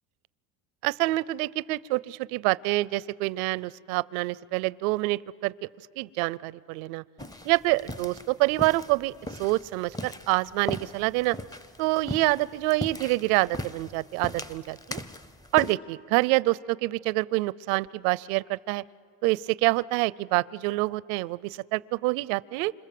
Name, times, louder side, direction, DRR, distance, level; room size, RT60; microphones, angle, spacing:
voice 1, 0.8-5.5 6.0-7.0 7.4-9.1 9.4-11.4 11.8-15.0 15.5-18.8 19.2-22.7, right 21 dB, 80° right, 22 dB, 0.6 m, -26 dB
sound 1, 7.2-15.7, left 1 dB, 10° left, 0.6 m, -39 dB
27.5 x 26.5 x 7.6 m, 2.2 s
supercardioid pair, 115°, 42 cm